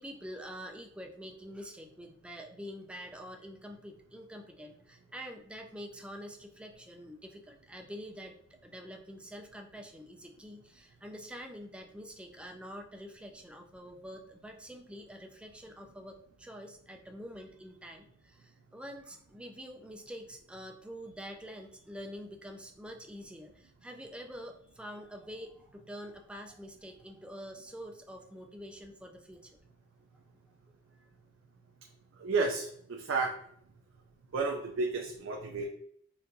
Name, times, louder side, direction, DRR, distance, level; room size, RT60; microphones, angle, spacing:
voice 1, 0.0-29.5, equal, 5° right, 3 dB, 0.4 m, -46 dB
voice 2, 32.2-33.3 34.3-35.7, right 3 dB, 65° right, 1 dB, 0.5 m, -31 dB
4.4 x 2.5 x 2.6 m, 0.63 s
head